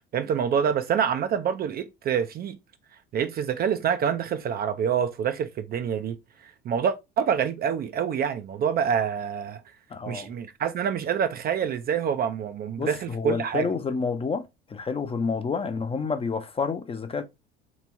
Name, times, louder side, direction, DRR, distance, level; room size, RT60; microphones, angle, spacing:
voice 1, 0.1-2.6 3.1-6.2 6.4-9.6 10.1-13.7, right 8 dB, 30° right, 0.5 m, -26 dB
voice 2, 9.9-10.3 12.7-14.4 14.7-17.2, left 5 dB, 20° left, 0.5 m, -29 dB
3.3 x 3.1 x 4.2 m
figure-of-eight pair, 65°, 31 cm